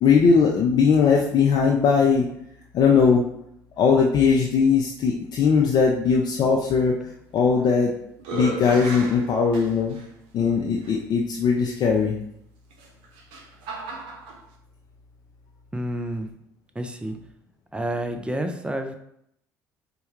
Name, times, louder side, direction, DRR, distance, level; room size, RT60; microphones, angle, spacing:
voice 1, 0.0-2.2 2.7-3.2 3.8-7.0 7.3-7.9 8.3-10.0 10.3-12.2, left 5 dB, 50° left, 0 dB, 0.5 m, -19 dB
sound 1, 7.4-7.8 8.2-10.1 10.8-10.9 12.7-14.4, right 3 dB, 65° right, 0.6 m, -35 dB
voice 2, 15.7-16.3 16.8-17.2 17.7-19.0, right 1 dB, 10° right, 6 dB, 0.5 m, -29 dB
4.3 x 2.3 x 3.1 m, 0.74 s
hypercardioid pair, 55°, 9 cm